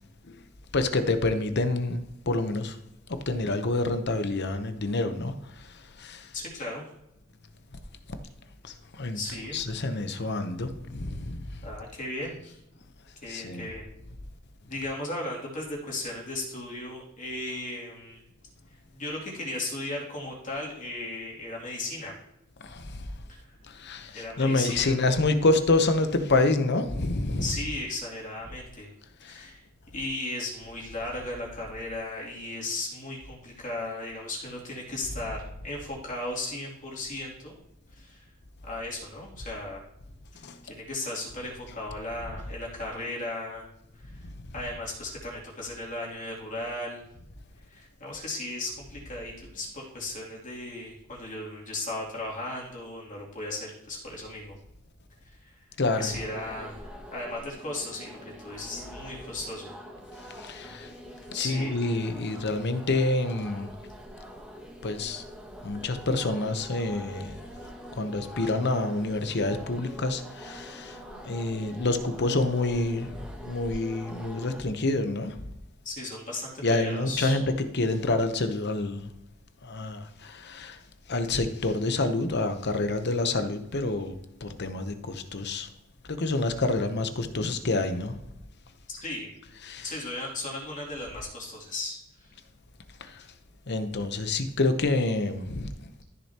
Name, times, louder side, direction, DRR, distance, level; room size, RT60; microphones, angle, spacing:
voice 1, 0.7-2.8 3.1-5.3 6.0-6.3 8.6-9.2 9.5-11.4 13.3-13.7 22.6-23.0 23.7-27.5 29.2-29.4 40.4-40.6 55.8-56.1 60.4-60.9 61.3-63.7 64.8-65.2 65.6-67.4 68.0-71.0 71.2-75.4 76.6-79.1 79.6-80.8 81.1-85.7 86.1-88.2 89.6-89.9 93.0-93.2 93.7-95.9, left 2 dB, 55° left, 0.9 m, -27 dB
voice 2, 6.3-6.8 9.1-9.6 11.6-12.6 13.2-13.9 14.7-18.2 18.9-22.1 24.1-24.9 27.4-28.9 29.3-29.6 29.9-35.4 35.6-37.6 37.9-38.2 38.7-39.8 40.6-43.7 44.0-44.2 44.5-47.0 47.7-54.5 55.2-55.6 56.0-56.8 57.1-59.7 61.3-61.7 75.8-77.4 88.9-89.3 89.8-92.3, left 2 dB, 40° left, 2.7 m, -36 dB
sound 1, 55.8-74.6, equal, 5° right, 1.2 m, -44 dB
13.5 x 6.7 x 2.9 m
head